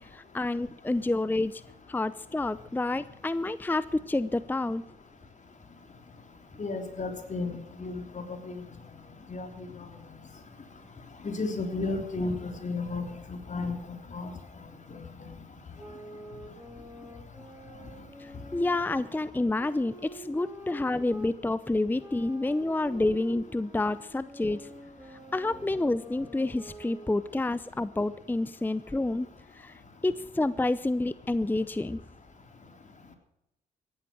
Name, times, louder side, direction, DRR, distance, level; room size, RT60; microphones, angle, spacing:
voice 1, 0.0-1.6 1.9-4.8 18.2-24.7 25.1-29.3 29.5-32.0, left 2 dB, 10° left, 16 dB, 0.6 m, -29 dB
voice 2, 6.6-8.6 9.3-9.8 11.2-13.8 14.1-14.3 14.9-15.0, left 3 dB, 40° left, 5 dB, 3.5 m, -33 dB
sound 1, 15.8-21.3 22.0-27.5, right 1 dB, 10° right, 4.2 m, -47 dB
16.0 x 11.5 x 6.3 m, 0.85 s
supercardioid pair, 55°, 18 cm